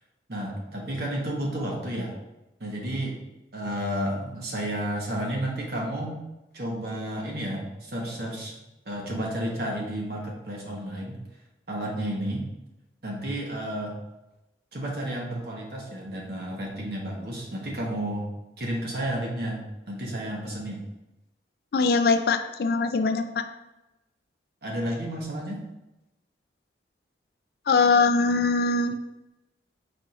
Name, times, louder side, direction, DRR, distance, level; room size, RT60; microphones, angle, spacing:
voice 1, 0.3-2.2 2.6-3.2 3.5-6.2 6.5-8.5 8.8-11.2 11.7-12.5 13.0-13.9 14.7-18.3 18.6-20.9 24.6-25.6, right 1 dB, 60° right, -1 dB, 1.1 m, -31 dB
voice 2, 21.7-23.4 27.7-29.0, left 4 dB, 55° left, 8 dB, 0.3 m, -22 dB
4.9 x 4.3 x 2.4 m, 0.96 s
head